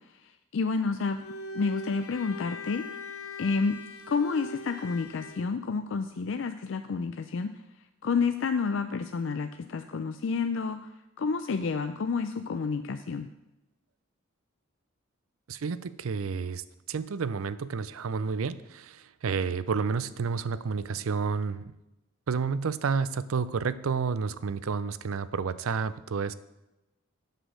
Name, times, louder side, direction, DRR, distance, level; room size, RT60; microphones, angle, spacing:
voice 1, 0.2-1.2 1.5-2.9 3.4-3.8 4.1-7.5 8.0-10.9 11.2-13.3, left 4 dB, 60° left, 8 dB, 0.4 m, -29 dB
Bowed string instrument, 1.0-5.5, left 2 dB, 90° left, 0.9 m, -41 dB
voice 2, 15.5-21.7 22.3-26.3, right 5 dB, 80° right, 15 dB, 0.5 m, -30 dB
7.9 x 6.2 x 6.4 m, 0.95 s
head